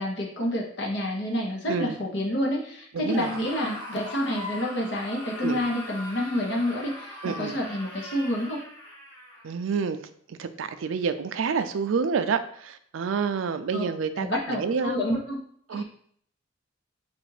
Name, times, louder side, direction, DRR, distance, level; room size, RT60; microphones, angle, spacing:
voice 1, 0.0-8.6 13.7-13.8 14.1-15.4 15.7-15.8, left 1 dB, 60° left, 0 dB, 1.1 m, -28 dB
Screaming, 3.0-9.5, left 1 dB, 25° left, 1.4 m, -40 dB
voice 2, 3.0-3.4 5.4-5.6 7.2-7.6 9.4-10.0 10.3-15.0 15.7-15.8, right 5 dB, 85° right, 10 dB, 0.4 m, -28 dB
4.1 x 2.6 x 4.8 m, 0.62 s
head